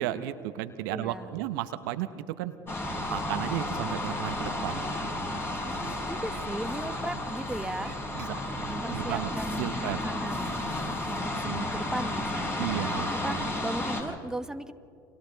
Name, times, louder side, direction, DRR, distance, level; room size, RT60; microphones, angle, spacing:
voice 1, 0.0-2.5 3.1-4.8 8.1-8.4 8.9-9.3 9.6-10.0 11.4-11.7 12.6-13.5, right 13 dB, 70° right, 11 dB, 1.0 m, -33 dB
voice 2, 0.9-1.3 5.6-7.9 8.6-10.8 11.1-14.7, right 1 dB, 5° right, 8 dB, 1.2 m, -37 dB
sound 1, 2.7-14.0, left 1 dB, 20° left, 6.8 m, -32 dB
30.0 x 26.0 x 4.0 m, 2.4 s
hypercardioid pair, 75°, 11 cm